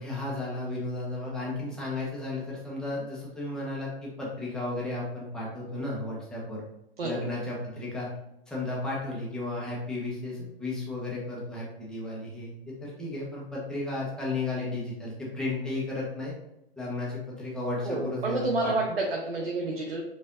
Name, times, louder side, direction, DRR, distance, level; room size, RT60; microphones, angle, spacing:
voice 1, 0.0-6.6 7.0-8.1 8.5-16.3 16.8-18.7, left 2 dB, ahead, -6 dB, 1.5 m, -34 dB
voice 2, 17.8-20.0, right 2 dB, 75° right, 0 dB, 0.9 m, -29 dB
5.1 x 3.3 x 2.7 m, 0.87 s
figure-of-eight pair, 110°, 30 cm